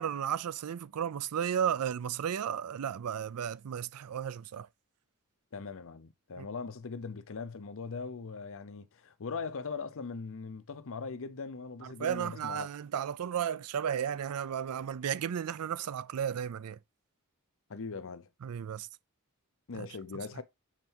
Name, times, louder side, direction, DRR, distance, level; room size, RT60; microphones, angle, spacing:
voice 1, 0.0-4.7 6.4-6.5 11.8-16.8 18.4-18.9 19.7-19.9 20.4-20.5, right 8 dB, 75° right, 0.4 m, -34 dB
voice 2, 5.5-12.7 17.7-18.3 19.7-20.4, left 4 dB, 65° left, 0.7 m, -40 dB
7.3 x 4.5 x 2.8 m
head